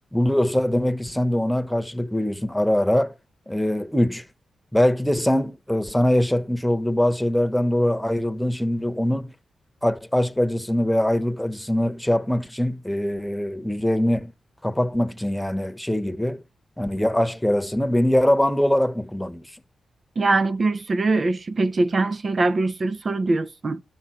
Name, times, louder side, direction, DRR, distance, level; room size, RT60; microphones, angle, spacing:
voice 1, 0.1-3.1 3.5-4.2 4.7-9.3 9.8-14.3 14.6-16.4 16.8-19.4, left 1 dB, 5° left, 1.2 m, -22 dB
voice 2, 20.2-23.8, right 3 dB, 45° right, 0.7 m, -22 dB
12.5 x 6.2 x 5.9 m
cardioid pair, 60°, 0 cm